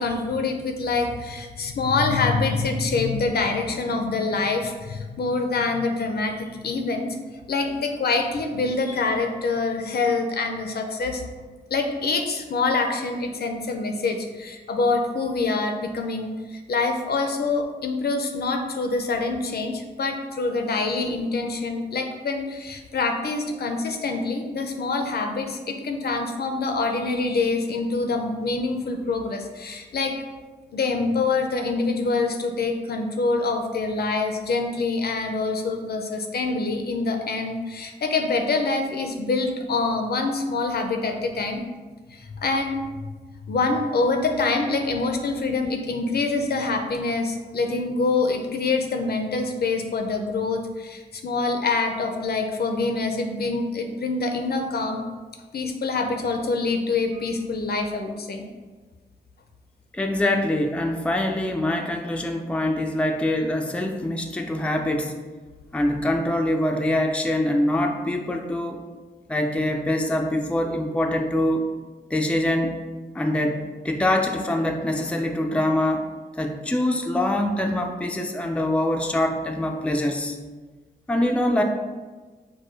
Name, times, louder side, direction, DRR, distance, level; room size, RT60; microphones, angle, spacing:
voice 1, 0.0-7.2 7.5-11.2 11.7-30.2 30.7-41.6 42.1-43.1 43.5-55.0 55.5-58.5, left 3 dB, 65° left, 4 dB, 0.5 m, -25 dB
voice 2, 59.9-65.1 65.7-68.8 69.3-71.7 72.1-72.8 73.1-76.1 76.4-80.4 81.1-81.6, left 1 dB, 5° left, 3 dB, 0.4 m, -24 dB
4.6 x 2.2 x 4.5 m, 1.3 s
wide cardioid pair, 80°, 17 cm